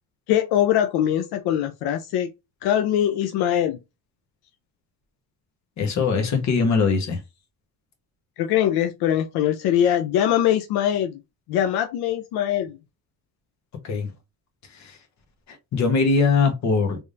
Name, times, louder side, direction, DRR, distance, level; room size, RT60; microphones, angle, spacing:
voice 1, 0.3-2.3 2.6-3.8 8.4-11.2 11.5-12.8, left 10 dB, 85° left, 0.6 m, -22 dB
voice 2, 5.8-7.2 13.8-14.1 14.7-15.0 15.7-17.0, left 4 dB, 50° left, 1.2 m, -21 dB
3.5 x 3.3 x 2.5 m
cardioid pair, 140°, 37 cm